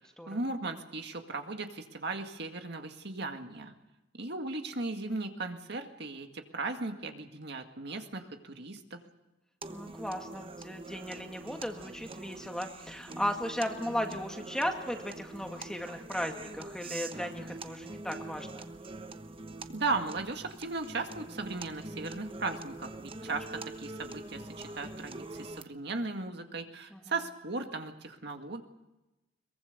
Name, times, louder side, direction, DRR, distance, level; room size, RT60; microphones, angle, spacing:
voice 1, 0.3-3.7 4.1-9.0 19.7-28.6, right 3 dB, 60° right, 5 dB, 2.0 m, -37 dB
sound 1, 9.6-25.6, right 2 dB, 30° right, 1.0 m, -44 dB
voice 2, 9.7-18.7 23.3-23.4 26.9-27.0, equal, 5° left, 3 dB, 2.0 m, -36 dB
23.0 x 22.0 x 6.7 m, 0.99 s
head